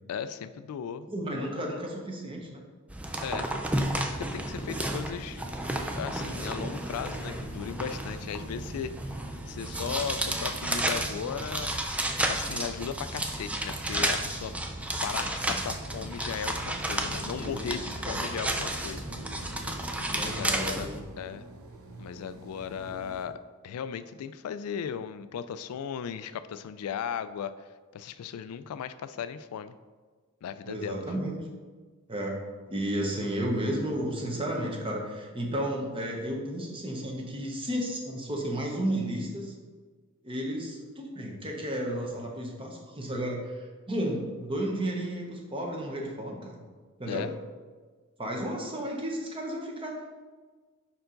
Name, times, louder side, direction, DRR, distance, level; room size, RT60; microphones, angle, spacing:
voice 1, 0.1-1.7 3.2-3.5 4.0-8.9 9.5-11.7 12.3-14.5 15.0-19.1 20.2-20.9 21.2-21.4 22.0-23.4 23.6-27.5 27.9-29.7 30.4-31.0 47.1-47.3, left 7 dB, 85° left, 13 dB, 0.3 m, -36 dB
voice 2, 1.1-2.6 15.5-15.6 17.4-18.3 20.1-21.0 22.8-22.9 30.7-31.4 32.1-32.4 32.7-39.5 40.2-46.6 47.0-47.3 48.2-50.2, right 1 dB, 25° right, 0 dB, 0.9 m, -33 dB
sound 1, 2.9-21.0, right 1 dB, 5° right, 0.3 m, -32 dB
sound 2, 4.5-23.3, right 2 dB, 80° right, 0.8 m, -47 dB
5.6 x 4.5 x 3.8 m, 1.4 s
head